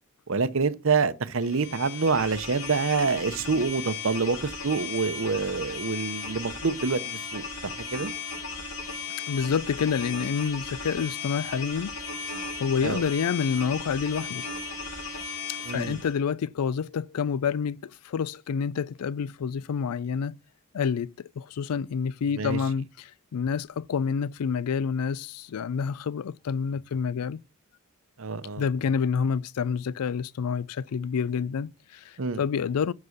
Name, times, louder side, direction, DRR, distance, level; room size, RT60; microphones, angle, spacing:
voice 1, 0.3-8.1 12.8-13.0 15.6-16.0 22.4-22.6 28.2-28.6 32.2-32.4, right 4 dB, 60° right, 0.7 m, -27 dB
sound 1, 1.4-16.2, left 4 dB, 70° left, 3.0 m, -36 dB
voice 2, 9.3-11.9 12.6-14.4 15.7-20.4 20.7-27.4 28.6-32.9, left 6 dB, 90° left, 0.4 m, -28 dB
9.7 x 4.1 x 6.5 m
head